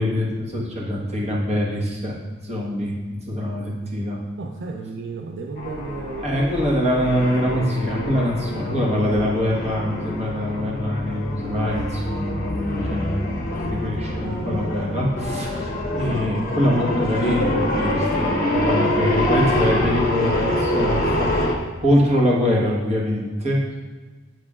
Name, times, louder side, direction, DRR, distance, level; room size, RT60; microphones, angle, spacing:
voice 1, 0.0-4.2 6.2-23.8, equal, 35° right, -3 dB, 1.3 m, -24 dB
voice 2, 4.4-6.3, right 3 dB, 60° right, 2 dB, 0.4 m, -33 dB
sound 1, 5.6-21.5, left 1 dB, 45° left, 1.0 m, -25 dB
7.8 x 7.2 x 2.4 m, 1.3 s
head